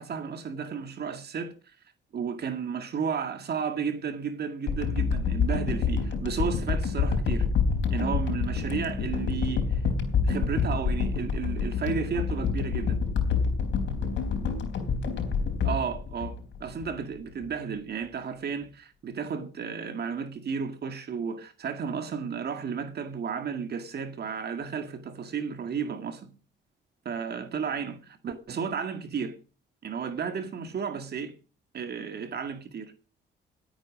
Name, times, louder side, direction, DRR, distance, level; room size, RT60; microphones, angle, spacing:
voice 1, 0.0-1.8 2.1-7.5 7.9-9.8 10.2-13.0 15.6-26.3 27.1-29.4 29.8-31.3 31.7-32.9, right 6 dB, 55° right, 2.0 m, -33 dB
sound 1, 4.7-16.9 17.4-17.5, left 5 dB, 70° left, 4.0 m, -27 dB
18.0 x 9.1 x 5.2 m
cardioid pair, 90°, 20 cm